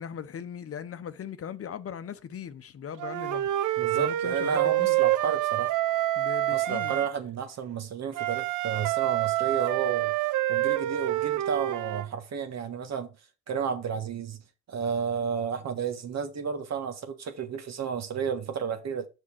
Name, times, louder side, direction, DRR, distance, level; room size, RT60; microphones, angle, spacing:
voice 1, 0.0-5.0 6.2-7.0, left 8 dB, 50° left, 0.8 m, -39 dB
Wind instrument woodwind instrument, 3.0-7.1 8.1-12.1, right 15 dB, 80° right, 0.6 m, -27 dB
voice 2, 3.8-5.7 6.5-10.1 10.5-13.2 13.5-14.4 14.7-19.1, right 6 dB, 60° right, 1.5 m, -32 dB
6.3 x 5.4 x 5.9 m
cardioid pair, 90°, 30 cm